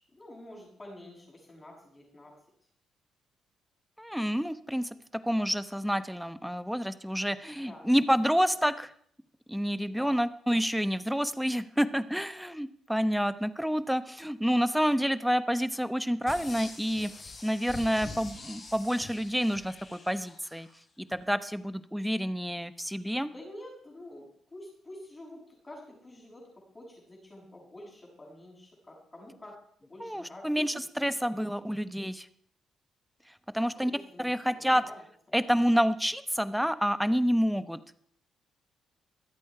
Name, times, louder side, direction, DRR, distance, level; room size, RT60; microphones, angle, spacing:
voice 1, 0.1-2.3 7.6-8.0 9.9-10.2 23.1-30.5 31.0-31.1 31.4-31.8 33.6-35.0, left 1 dB, 20° left, -7 dB, 6.7 m, -49 dB
voice 2, 4.0-4.9 5.2-8.9 9.5-17.1 17.4-20.7 21.1-23.3 30.0-32.2 33.5-33.9 34.2-34.8 35.3-37.8, equal, ahead, 12 dB, 0.9 m, -28 dB
sound 1, 16.3-20.7 21.1-21.2, left 3 dB, 40° left, 3.9 m, -45 dB
24.5 x 8.4 x 4.8 m, 0.62 s
cardioid pair, 90°, 0 cm